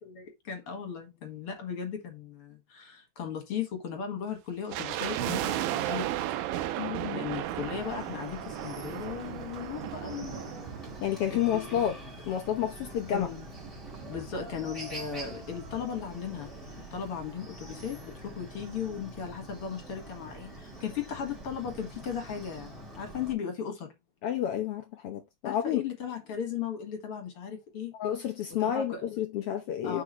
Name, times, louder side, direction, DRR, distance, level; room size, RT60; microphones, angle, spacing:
voice 1, 0.0-6.1 6.8-10.7 11.3-11.8 13.1-13.5 14.1-16.5 16.9-23.9 25.4-27.9 28.5-29.0 29.8-30.0, left 7 dB, 50° left, 2.2 m, -37 dB
sound 1, 4.7-12.0 12.2-12.3 13.0-14.8 15.1-15.2 15.4-15.7 16.2-16.3, right 13 dB, 85° right, 2.2 m, -35 dB
voice 2, 6.8-7.2 11.0-12.0 12.3-13.3 24.2-25.8 27.9-30.0, left 10 dB, 80° left, 1.3 m, -30 dB
Chicken rooster, 7.4-23.3, right 1 dB, ahead, 3.0 m, -45 dB
9.6 x 4.9 x 3.1 m
omnidirectional pair, 3.7 m